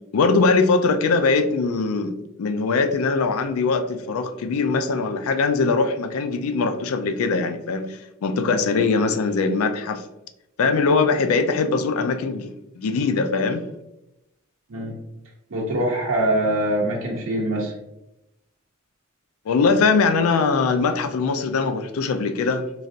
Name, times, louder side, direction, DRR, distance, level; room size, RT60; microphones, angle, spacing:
voice 1, 0.1-10.0 10.6-13.6 19.5-22.6, left 4 dB, 90° left, 9 dB, 0.4 m, -21 dB
voice 2, 15.5-17.7, right 1 dB, 80° right, -3 dB, 0.6 m, -23 dB
3.2 x 2.4 x 2.6 m, 0.89 s
head